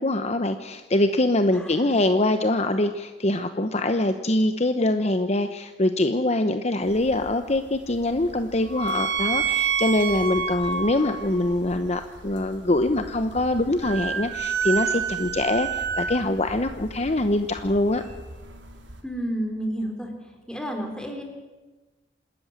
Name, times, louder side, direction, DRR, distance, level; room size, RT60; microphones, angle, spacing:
voice 1, 0.0-18.0, left 1 dB, 35° left, 8 dB, 0.9 m, -24 dB
voice 2, 1.5-1.9 19.0-20.1 20.5-21.2, right 1 dB, 5° left, 3 dB, 3.8 m, -31 dB
sound 1, 6.8-19.0, right 6 dB, 75° right, 3.6 m, -30 dB
27.0 x 13.5 x 9.8 m, 1.2 s
head